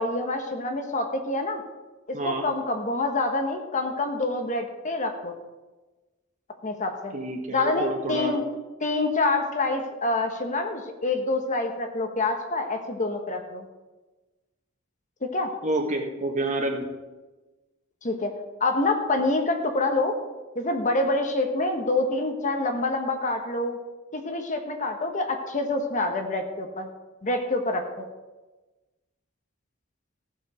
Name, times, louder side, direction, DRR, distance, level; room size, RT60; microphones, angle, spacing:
voice 1, 0.0-1.6 2.1-5.4 6.6-7.1 7.5-8.4 8.8-13.6 15.2-15.5 18.0-18.3 18.6-20.2 20.5-23.8 24.1-26.9 27.2-28.0, left 2 dB, 40° left, 5 dB, 1.2 m, -26 dB
voice 2, 2.1-2.4 7.1-8.3 15.6-16.8, right 1 dB, 40° right, 2 dB, 1.7 m, -28 dB
15.0 x 7.1 x 5.1 m, 1.2 s
head